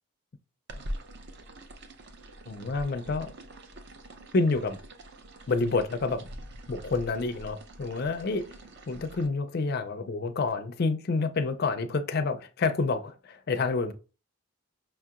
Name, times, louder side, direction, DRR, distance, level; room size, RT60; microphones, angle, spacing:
sound 1, 0.7-9.3, right 1 dB, 50° right, 0.5 m, -44 dB
voice 1, 2.5-3.3 4.3-4.8 5.5-6.2 6.7-8.4 8.9-13.9, left 3 dB, 45° left, 0.4 m, -28 dB
5.5 x 2.8 x 2.3 m
head